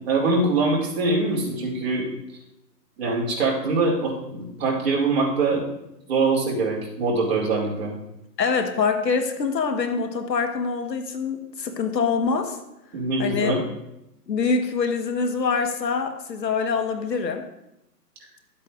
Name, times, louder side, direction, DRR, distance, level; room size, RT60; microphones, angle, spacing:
voice 1, 0.1-2.1 3.0-5.6 6.1-7.9 12.9-13.6, right 3 dB, 35° right, -3 dB, 2.4 m, -23 dB
voice 2, 8.4-12.6 13.2-13.6 14.3-17.4, left 5 dB, 80° left, 6 dB, 1.4 m, -25 dB
12.0 x 8.3 x 2.5 m, 0.87 s
hypercardioid pair, 165°, 49 cm